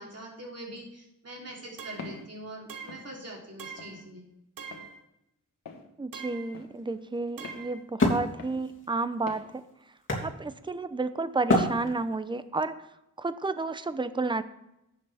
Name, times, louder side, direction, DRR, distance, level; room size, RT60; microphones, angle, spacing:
voice 1, 0.0-4.3, right 1 dB, 45° right, -2 dB, 3.4 m, -43 dB
sound 1, 1.8-2.2 2.7-3.1 3.6-4.0 4.6-5.0 6.1-6.6 7.4-7.8, right 6 dB, 75° right, 1.0 m, -43 dB
Walk footsteps, 2.0-2.3 2.9-3.1 3.8-4.0 4.7-4.9 5.7-5.9 6.5-6.7 7.4-7.7 8.4-8.6 9.3-9.5, left 4 dB, 85° left, 1.4 m, -43 dB
voice 2, 6.0-9.6 10.2-12.7 13.2-14.4, right 3 dB, 15° right, 13 dB, 0.6 m, -31 dB
Wood, 6.2-10.9 11.5-12.4, left 1 dB, 35° left, 2.9 m, -29 dB
11.5 x 8.7 x 3.5 m, 0.86 s
cardioid pair, 75°, 33 cm